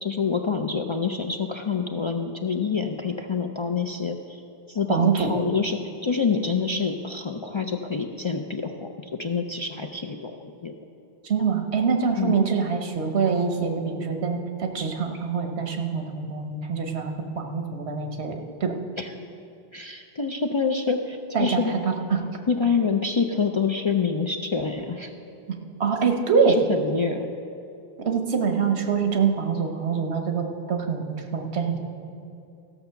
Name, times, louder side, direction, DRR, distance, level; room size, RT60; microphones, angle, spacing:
voice 1, 0.0-4.4 4.7-10.8 12.2-12.4 19.0-19.1 19.7-21.7 22.5-25.1 26.5-27.3, left 5 dB, 45° left, 4 dB, 0.4 m, -27 dB
voice 2, 4.9-5.3 11.2-18.7 21.3-22.2 25.8-26.6 28.0-31.8, right 6 dB, 90° right, 4 dB, 1.3 m, -25 dB
15.0 x 6.8 x 5.8 m, 2.6 s
omnidirectional pair, 1.1 m